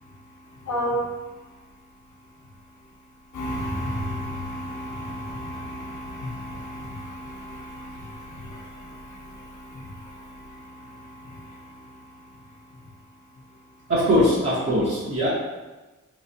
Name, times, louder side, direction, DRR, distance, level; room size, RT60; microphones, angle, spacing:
voice 1, 0.0-1.6 3.3-12.9, equal, 75° left, -3 dB, 0.9 m, -34 dB
voice 2, 13.9-15.3, equal, 50° right, -9 dB, 1.0 m, -21 dB
4.0 x 3.0 x 2.5 m, 1.2 s
wide cardioid pair, 75°, 30 cm